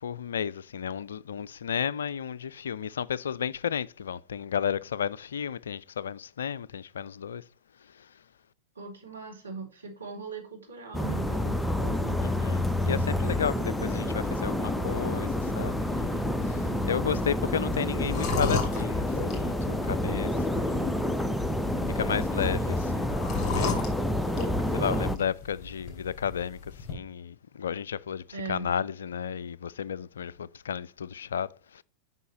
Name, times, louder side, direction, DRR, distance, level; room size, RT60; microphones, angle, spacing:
voice 1, 0.0-7.4 12.2-21.0 22.0-23.8 24.7-28.2 28.5-31.8, left 8 dB, 65° left, 0.3 m, -33 dB
voice 2, 8.7-12.2 16.5-17.2 28.3-28.7, right 3 dB, 80° right, 2.6 m, -40 dB
sound 1, 10.9-25.2, left 1 dB, 5° left, 0.6 m, -28 dB
sound 2, 14.8-26.9, left 4 dB, 25° left, 3.1 m, -37 dB
9.2 x 5.6 x 3.0 m
figure-of-eight pair, 90°, 0 cm